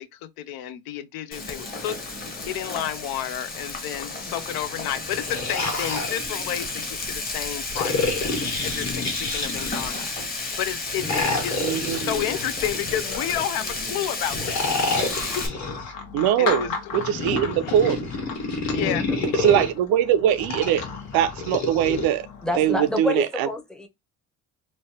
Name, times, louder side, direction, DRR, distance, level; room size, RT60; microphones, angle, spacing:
voice 1, 0.0-1.9 2.5-10.1 10.4-11.6 12.1-14.7 15.2-15.4 16.4-16.7 17.4-17.7 18.7-19.0, left 11 dB, 85° left, 0.5 m, -31 dB
Frying (food), 1.3-15.5, left 3 dB, 25° left, 0.9 m, -32 dB
sound 1, 5.0-6.9 7.7-10.1 11.0-13.5 14.3-15.9 16.9-19.7 20.4-22.1, left 3 dB, 50° left, 1.2 m, -29 dB
voice 2, 11.0-11.4 12.3-12.4 18.7-19.3 22.4-23.9, left 2 dB, ahead, 0.5 m, -29 dB
voice 3, 11.6-12.2 16.1-18.0 19.4-20.8 21.1-22.3 22.6-23.5, right 10 dB, 85° right, 0.5 m, -22 dB
sound 2, 15.1-23.0, left 5 dB, 70° left, 1.0 m, -36 dB
3.0 x 2.1 x 2.7 m
cardioid pair, 95°, 35 cm